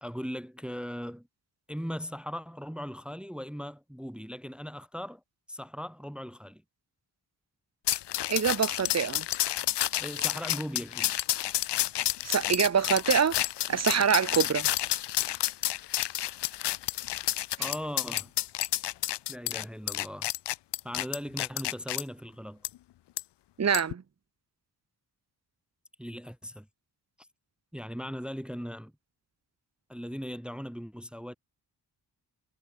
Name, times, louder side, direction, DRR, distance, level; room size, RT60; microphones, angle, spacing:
voice 1, 0.0-1.3 1.7-5.2 5.5-6.6 10.0-11.2 17.6-18.3 19.3-20.3 20.8-22.6 26.0-26.7 27.7-28.9 29.9-31.4, equal, ahead, 1.2 m, -38 dB
sound 1, 7.9-22.0 22.6-22.7 23.2-23.3 23.7-23.9, left 14 dB, 75° left, 0.6 m, -30 dB
voice 2, 8.3-9.2 12.2-13.4 13.7-14.7 17.6-17.7 23.6-24.0, right 7 dB, 40° right, 1.1 m, -25 dB
cardioid pair, 65°, 41 cm